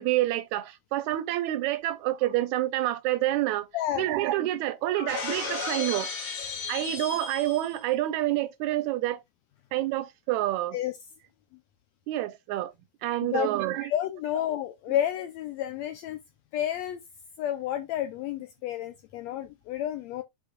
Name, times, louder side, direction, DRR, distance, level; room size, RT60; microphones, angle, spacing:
voice 1, 0.0-3.7 4.0-6.1 6.7-9.2 9.7-10.8 12.1-12.7 13.0-13.9, right 15 dB, 80° right, 1.9 m, -28 dB
voice 2, 3.7-4.1 4.9-5.9 6.2-6.6 10.7-10.9 13.2-13.5 13.8-16.2 16.5-17.0 17.4-20.2, left 11 dB, 80° left, 1.6 m, -31 dB
Shatter, 5.1-7.8, left 5 dB, 65° left, 3.6 m, -35 dB
11.5 x 4.3 x 2.3 m
omnidirectional pair, 3.6 m